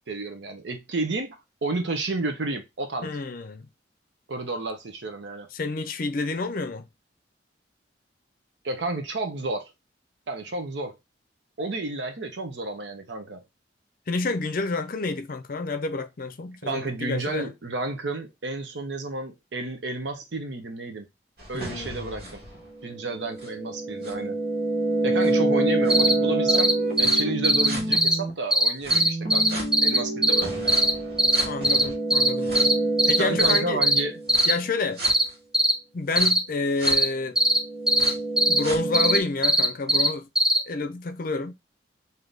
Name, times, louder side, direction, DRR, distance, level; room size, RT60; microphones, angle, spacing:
voice 1, 0.0-3.1 4.3-5.5 8.6-9.7 10.3-10.9 11.6-13.4 16.6-21.1 21.5-22.2 22.8-24.4 25.0-26.7 27.0-30.9 33.2-34.2, right 2 dB, 70° right, 0.7 m, -31 dB
voice 2, 3.0-3.7 5.5-6.9 14.1-17.5 21.5-22.3 31.4-32.7 33.1-33.8 34.5-35.0 35.9-37.4 38.5-40.3 40.7-41.5, left 3 dB, 50° left, 0.5 m, -29 dB
sound 1, 21.4-28.3 28.9-34.5 35.0-35.1 36.2-36.3 36.8-36.9 37.5-39.2, right 2 dB, 55° right, 1.4 m, -28 dB
sound 2, 25.9-26.1 26.5-26.7 27.0-28.1 28.5-30.4 30.7-30.9 31.2-31.8 32.1-32.3 32.6-32.7 33.0-34.0 34.3-34.5 35.0-35.2 35.5-35.7 36.2-36.4 36.9-37.1 37.4-37.6 37.9-38.1 38.4-38.6 38.9-40.1 40.4-40.6, right 1 dB, 5° right, 0.4 m, -19 dB
3.4 x 2.7 x 3.9 m
head